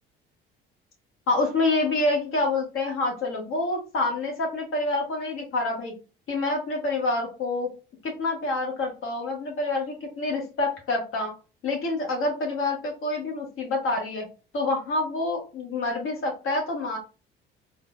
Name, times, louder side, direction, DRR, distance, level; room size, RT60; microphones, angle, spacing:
voice 1, 1.3-5.9 6.3-7.7 8.0-11.3 11.6-14.2 14.5-17.0, left 2 dB, 45° left, 1 dB, 1.4 m, -27 dB
3.8 x 2.2 x 2.5 m, 0.32 s
figure-of-eight pair, 55°, 29 cm